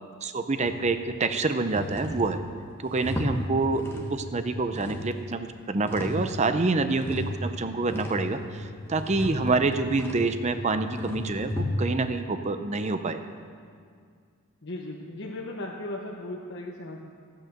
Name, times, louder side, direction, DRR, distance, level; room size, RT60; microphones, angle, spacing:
voice 1, 0.2-2.4 2.8-3.8 4.1-13.2, right 3 dB, 30° right, 9 dB, 0.6 m, -27 dB
sound 1, 0.7-1.2 1.6-4.2 4.5-6.3 6.6-12.1, left 1 dB, 10° left, 1.4 m, -34 dB
voice 2, 9.2-9.5 14.6-17.0, left 1 dB, 50° left, -2 dB, 1.0 m, -37 dB
13.5 x 9.1 x 6.6 m, 2.2 s
head